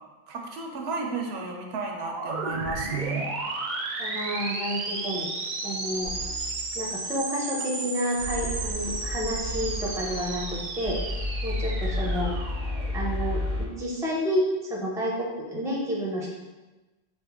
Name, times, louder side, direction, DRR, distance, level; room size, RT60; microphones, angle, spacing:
voice 1, 0.3-3.3, right 4 dB, 80° right, 2 dB, 0.8 m, -32 dB
sound 1, 1.9-13.6, right 3 dB, 55° right, 0.6 m, -34 dB
voice 2, 4.0-5.3 5.6-6.1 6.7-11.0 11.4-12.3 12.9-14.4 14.7-16.3, equal, 5° right, -3 dB, 0.5 m, -30 dB
sound 2, 6.0-6.7 8.2-13.7, left 1 dB, 50° left, 0.8 m, -32 dB
3.6 x 2.8 x 3.4 m, 1.1 s
omnidirectional pair, 1.1 m